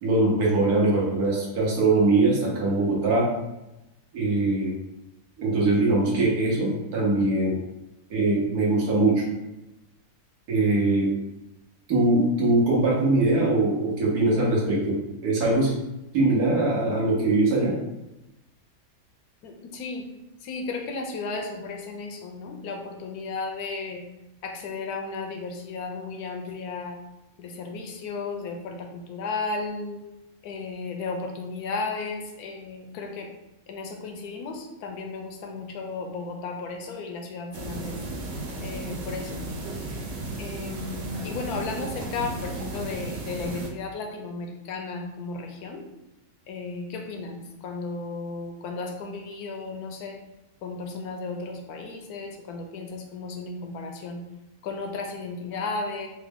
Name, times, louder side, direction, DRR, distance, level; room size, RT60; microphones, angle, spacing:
voice 1, 0.0-3.3 4.1-4.7 5.4-7.6 8.1-9.2 10.5-11.1 11.9-15.0 15.2-15.7 16.1-17.7, right 2 dB, 85° right, -4 dB, 1.5 m, -22 dB
voice 2, 19.4-20.1 20.4-24.0 24.4-27.0 27.4-30.0 30.4-33.3 33.7-38.0 38.6-39.4 39.9-40.0 40.4-45.9 46.5-50.2 50.6-54.2 54.6-56.1, left 3 dB, 90° left, 2 dB, 1.1 m, -34 dB
sound 1, 37.5-43.7, right 2 dB, 65° right, 0.9 m, -34 dB
4.1 x 2.2 x 3.5 m, 0.94 s
omnidirectional pair, 1.6 m